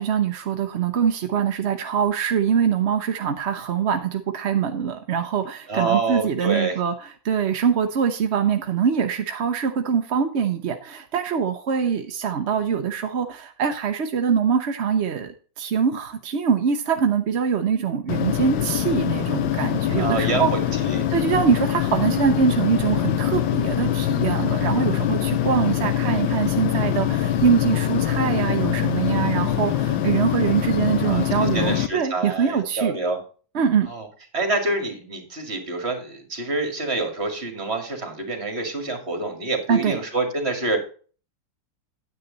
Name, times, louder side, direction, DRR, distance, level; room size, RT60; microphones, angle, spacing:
voice 1, 0.0-6.9 7.2-20.5 21.1-32.9 33.5-33.9 39.7-40.0, right 7 dB, 55° right, 6 dB, 0.8 m, -23 dB
voice 2, 5.7-6.8 20.0-21.1 31.0-33.2 33.8-34.1 34.3-40.8, right 3 dB, 35° right, 6 dB, 2.4 m, -27 dB
sound 1, 18.1-31.9, left 11 dB, 85° left, 1.6 m, -24 dB
9.8 x 8.3 x 3.9 m, 0.39 s
omnidirectional pair, 2.0 m